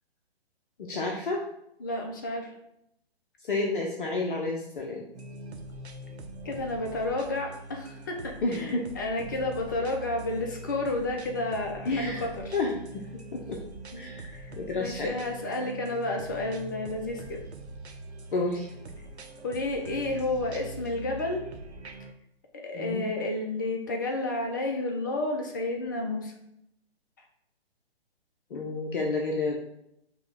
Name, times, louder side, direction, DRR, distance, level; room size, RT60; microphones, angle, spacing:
voice 1, 0.8-1.4 3.5-5.0 8.4-8.9 11.9-13.0 13.3-13.6 13.9-15.1 18.3-18.7 22.7-23.1 28.5-29.6, left 2 dB, 55° left, -1 dB, 0.8 m, -30 dB
voice 2, 1.8-2.6 6.4-12.5 14.3-14.5 14.7-17.4 19.4-21.5 22.6-26.3, left 2 dB, 20° left, 2 dB, 0.4 m, -31 dB
sound 1, 5.1-22.1, right 2 dB, 90° right, 0.7 m, -43 dB
5.4 x 2.2 x 4.2 m, 0.78 s
figure-of-eight pair, 130°, 32 cm